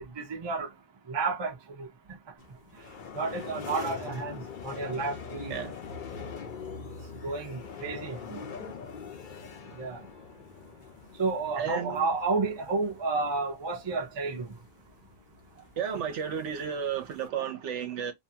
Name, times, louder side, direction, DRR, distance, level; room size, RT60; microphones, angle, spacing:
voice 1, 0.2-0.7 1.1-1.9 3.2-5.5 7.2-8.4 9.8-10.0 11.2-14.5, right 4 dB, 35° right, 0.4 m, -31 dB
sound 1, 2.4-17.3, left 6 dB, 50° left, 0.6 m, -43 dB
voice 2, 11.6-12.0 15.8-18.1, right 8 dB, 70° right, 0.9 m, -33 dB
2.6 x 2.2 x 2.7 m
omnidirectional pair, 1.3 m